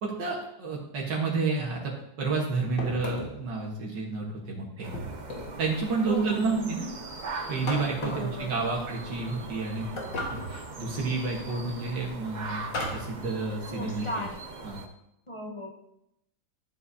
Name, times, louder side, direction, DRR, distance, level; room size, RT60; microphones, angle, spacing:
voice 1, 0.0-4.9 5.6-6.9 7.5-9.9 10.5-14.1 14.6-14.8, right 4 dB, 80° right, -2 dB, 2.0 m, -30 dB
sound 1, 2.8-3.5 4.9-5.6 7.7-8.4 10.0-10.7 12.7-13.2, left 1 dB, 85° left, 2.3 m, -35 dB
sound 2, 4.8-14.9, right 3 dB, 45° right, 0.5 m, -41 dB
voice 2, 6.1-6.7 8.0-8.7 13.7-14.4 15.3-15.7, left 1 dB, 25° left, 0 dB, 0.7 m, -36 dB
13.0 x 7.4 x 2.7 m, 0.83 s
omnidirectional pair, 1.9 m